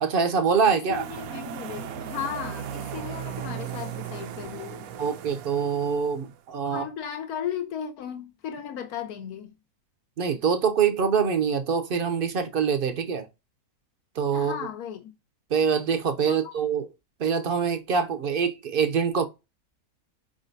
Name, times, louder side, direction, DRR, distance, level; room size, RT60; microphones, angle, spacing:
voice 1, 0.0-1.0 5.0-6.8 10.2-13.3 14.2-14.6 15.5-16.9 17.2-19.3, right 6 dB, 55° right, 0.6 m, -24 dB
voice 2, 0.7-4.9 6.6-9.5 14.3-15.1 16.2-16.5, left 9 dB, 85° left, 1.4 m, -35 dB
sound 1, 0.9-6.4, right 9 dB, 75° right, 1.0 m, -37 dB
5.0 x 3.6 x 2.6 m
omnidirectional pair, 1.6 m